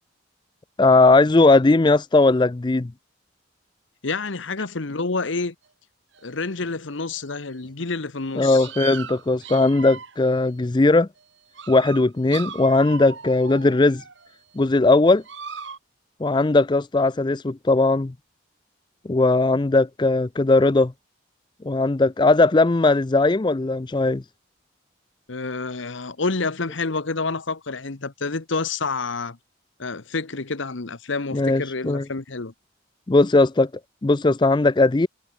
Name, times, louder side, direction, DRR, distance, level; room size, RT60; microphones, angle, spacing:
voice 1, 0.8-2.9 8.4-11.1 11.7-14.0 14.6-15.2 16.2-18.1 19.1-20.9 21.6-24.2 31.3-32.0 33.1-33.7 34.0-35.1, left 2 dB, 20° left, 0.4 m, -18 dB
voice 2, 4.0-5.5 6.2-8.7 25.3-29.4 29.8-32.5, left 3 dB, 70° left, 1.1 m, -28 dB
sound 1, 6.1-6.2 7.2-7.3 8.2-8.3 8.6-10.3 11.2-11.3 11.5-14.3 15.2-15.8, right 6 dB, 65° right, 2.4 m, -37 dB
head